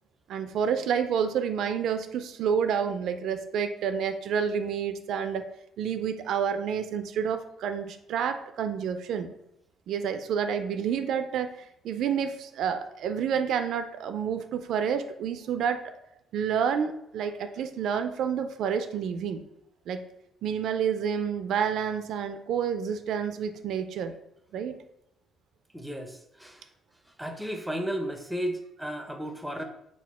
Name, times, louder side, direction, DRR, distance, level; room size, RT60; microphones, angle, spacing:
voice 1, 0.3-5.4 5.8-9.3 9.9-11.5 11.8-15.8 16.3-19.4 19.9-20.0 20.4-24.1 24.5-24.8, right 7 dB, 65° right, 9 dB, 0.3 m, -29 dB
voice 2, 25.7-26.6 27.2-29.6, equal, ahead, 5 dB, 0.4 m, -34 dB
4.2 x 2.3 x 4.1 m, 0.80 s
cardioid pair, 145°, 0 cm